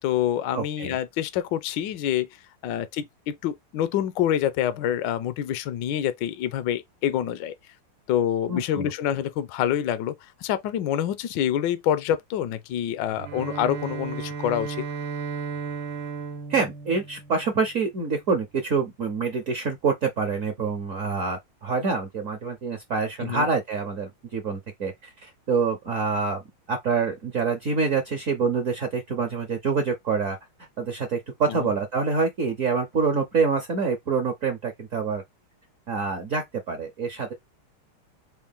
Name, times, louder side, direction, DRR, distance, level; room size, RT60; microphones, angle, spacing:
voice 1, 0.0-2.3 2.6-7.5 8.1-10.1 10.4-14.8 23.2-23.5 31.5-31.7, left 10 dB, 75° left, 1.1 m, -26 dB
voice 2, 0.5-1.0 8.5-8.9 16.5-26.4 26.7-30.4 30.8-35.2 35.9-37.3, right 5 dB, 60° right, 0.8 m, -26 dB
Bowed string instrument, 13.1-17.7, right 5 dB, 80° right, 1.6 m, -34 dB
4.4 x 2.2 x 3.5 m
omnidirectional pair, 2.3 m